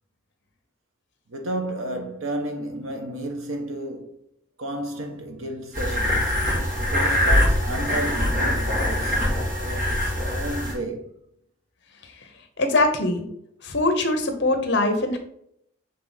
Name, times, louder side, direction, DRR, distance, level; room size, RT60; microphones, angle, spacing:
voice 1, 1.3-4.2 4.6-6.4 6.8-9.2 9.6-11.0, right 1 dB, 80° right, 1.1 m, -32 dB
sound 1, 5.7-10.7, left 1 dB, 40° right, 2.3 m, -23 dB
voice 2, 12.6-13.3 13.6-15.2, left 2 dB, 55° left, 1.0 m, -22 dB
6.6 x 3.6 x 4.1 m
head